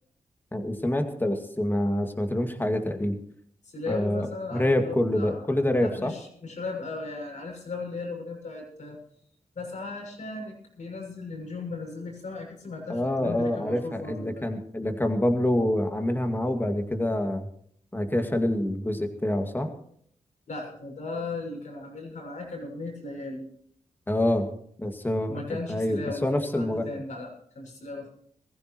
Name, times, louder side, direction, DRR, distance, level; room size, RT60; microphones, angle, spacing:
voice 1, 0.5-3.2 3.9-4.3 4.5-6.1 12.9-17.5 17.9-19.7 24.1-24.5 24.8-26.9, left 1 dB, 15° left, 5 dB, 2.2 m, -26 dB
voice 2, 3.6-5.4 5.8-9.0 9.5-14.4 20.5-23.5 25.3-28.1, left 3 dB, 70° left, 0 dB, 6.6 m, -37 dB
21.5 x 15.0 x 3.1 m, 0.64 s
cardioid pair, 80°, 13 cm